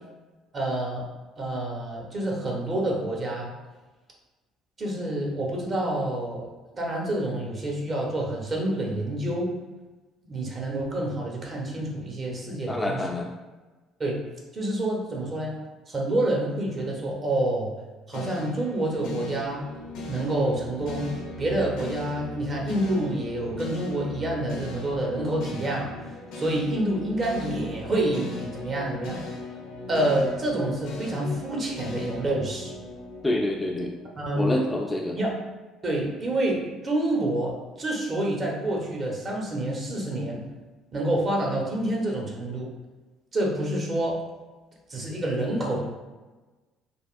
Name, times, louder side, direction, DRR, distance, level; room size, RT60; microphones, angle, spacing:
voice 1, 0.5-1.0 1.4-3.5 4.8-6.5 6.7-9.5 10.2-13.0 14.0-14.2 14.5-15.5 15.9-17.7 18.1-19.6 20.1-25.9 26.3-29.2 29.9-32.7 34.2-34.5 35.1-35.3 35.8-40.4 40.9-42.7 43.3-44.2 44.9-45.8, right 1 dB, 40° right, -1 dB, 0.9 m, -28 dB
voice 2, 12.7-13.3 33.2-33.9 34.3-35.2, left 1 dB, 15° left, 0 dB, 0.4 m, -27 dB
sound 1, 18.1-34.4, left 2 dB, 65° left, 0.6 m, -38 dB
3.4 x 2.3 x 2.4 m, 1.2 s
hypercardioid pair, 55°, 0 cm